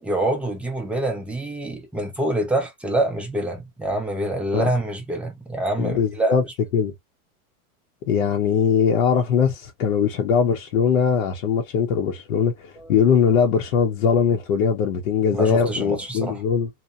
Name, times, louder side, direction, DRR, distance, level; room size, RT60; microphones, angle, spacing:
voice 1, 0.0-6.5 12.8-12.9 15.3-16.4, right 1 dB, 5° right, 0.3 m, -26 dB
voice 2, 5.8-6.4 6.7-6.9 8.1-16.7, left 7 dB, 70° left, 0.7 m, -21 dB
2.8 x 2.0 x 2.3 m
supercardioid pair, 125°, 43 cm